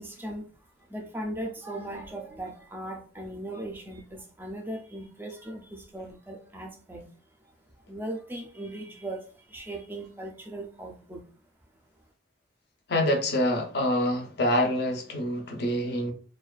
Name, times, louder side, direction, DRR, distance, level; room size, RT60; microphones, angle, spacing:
voice 1, 0.0-7.1 7.4-7.5 7.9-11.2, right 1 dB, 10° right, 0.4 m, -38 dB
voice 2, 12.9-16.1, left 1 dB, 60° left, 0.5 m, -26 dB
2.4 x 2.2 x 2.3 m
head